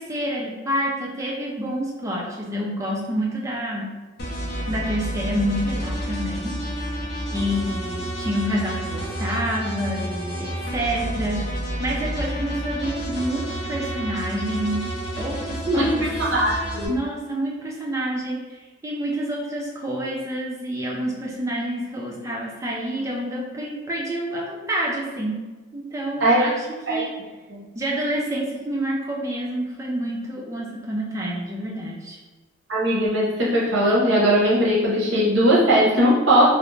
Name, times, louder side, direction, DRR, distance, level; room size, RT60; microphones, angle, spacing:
voice 1, 0.0-3.9 4.7-6.6 7.3-11.5 11.8-14.9 15.2-16.0 16.9-25.4 25.7-27.1 27.7-32.2, equal, 15° right, -3 dB, 0.4 m, -28 dB
sound 1, 4.2-16.9, right 1 dB, 50° left, 0.5 m, -30 dB
voice 2, 15.6-17.0 26.2-26.5 26.9-27.0 27.5-27.6 32.7-36.5, equal, 65° right, -6 dB, 0.8 m, -19 dB
2.5 x 2.0 x 3.0 m, 1.2 s
head